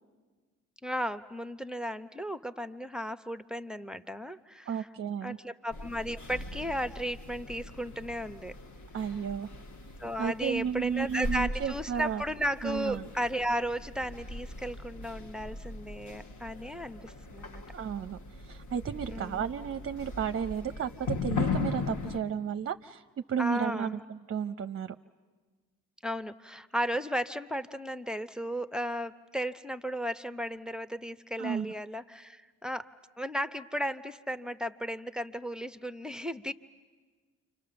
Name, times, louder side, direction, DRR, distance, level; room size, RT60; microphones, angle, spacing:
voice 1, 0.8-4.9 5.2-8.5 10.0-17.6 19.1-19.4 23.4-24.0 26.0-32.9 33.2-36.5, equal, ahead, 11 dB, 0.8 m, -35 dB
voice 2, 4.7-5.4 8.9-9.5 10.2-12.2 12.6-13.1 17.7-23.0 23.3-25.0 31.4-31.7, right 7 dB, 40° right, 10 dB, 0.7 m, -33 dB
sound 1, 5.7-22.2, left 3 dB, 55° left, 1.6 m, -39 dB
28.5 x 26.0 x 6.9 m, 1.4 s
supercardioid pair, 55°, 36 cm